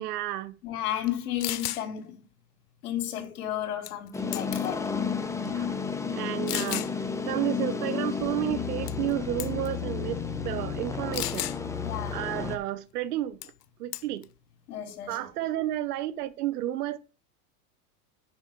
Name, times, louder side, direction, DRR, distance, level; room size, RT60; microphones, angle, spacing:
voice 1, 0.0-0.6 5.4-5.7 6.1-11.5 12.1-13.5 13.8-14.3 15.1-17.0, right 14 dB, 85° right, 0.9 m, -32 dB
voice 2, 0.6-2.2 2.8-4.9 11.8-12.2 14.7-15.2, left 11 dB, 70° left, 2.8 m, -33 dB
sound 1, 1.1-1.2 1.4-1.8 3.9-4.1 4.3-4.7 5.4-5.5 6.5-6.9 8.9-9.1 9.4-9.7 11.1-11.6 13.4-13.6 13.9-14.2, left 15 dB, 85° left, 0.8 m, -33 dB
sound 2, 4.1-12.6, left 6 dB, 5° left, 0.9 m, -32 dB
7.3 x 5.4 x 6.8 m
supercardioid pair, 125°, 45 cm